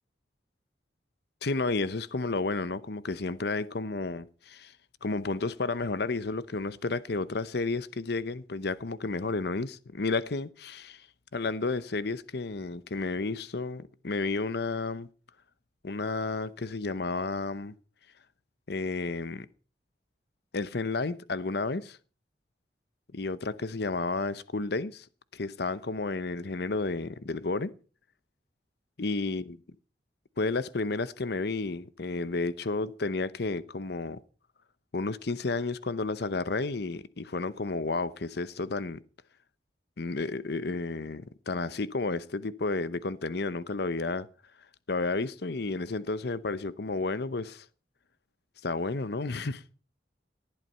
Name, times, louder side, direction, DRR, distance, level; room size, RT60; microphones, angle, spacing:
voice 1, 1.4-4.7 5.0-11.1 11.3-15.1 15.8-17.7 18.7-19.5 20.5-22.0 23.1-25.1 25.3-27.7 29.0-29.6 30.4-34.2 34.9-39.0 40.0-44.3 44.9-47.7 48.6-49.6, left 3 dB, 65° left, 0.8 m, -32 dB
19.0 x 12.5 x 5.6 m
head